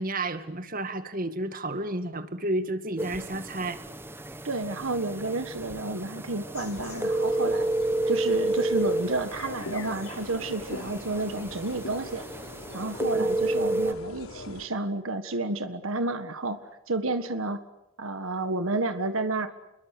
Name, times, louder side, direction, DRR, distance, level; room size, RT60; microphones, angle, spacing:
voice 1, 0.0-3.8 13.1-13.3, right 1 dB, 40° right, 10 dB, 2.1 m, -31 dB
sound 1, 3.0-13.9, right 2 dB, 10° right, 1.2 m, -31 dB
voice 2, 4.4-7.7 8.1-12.3 12.7-16.6 16.9-17.6 18.0-19.5, right 2 dB, 70° right, 9 dB, 1.6 m, -30 dB
sound 2, 6.5-14.7, left 2 dB, 80° left, 3.8 m, -41 dB
29.0 x 22.0 x 8.4 m, 0.91 s
head